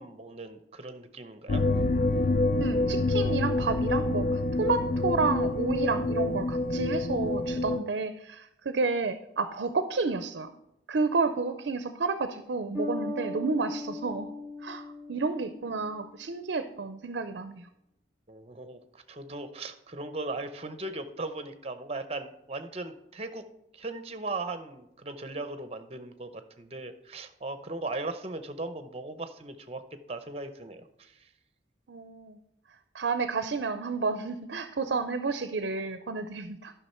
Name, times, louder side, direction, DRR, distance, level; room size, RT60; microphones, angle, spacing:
voice 1, 0.0-1.6 18.3-23.4 23.7-29.8 30.1-31.3, right 2 dB, 35° right, 10 dB, 0.7 m, -38 dB
sound 1, 1.5-7.8, left 2 dB, 45° left, 0.4 m, -27 dB
voice 2, 2.6-10.5 10.9-14.3 14.6-17.7 31.9-32.4 32.9-36.7, right 4 dB, 65° right, 10 dB, 0.5 m, -31 dB
Bass guitar, 12.7-16.3, left 1 dB, 5° right, 3.8 m, -38 dB
11.5 x 5.9 x 4.3 m, 0.83 s
head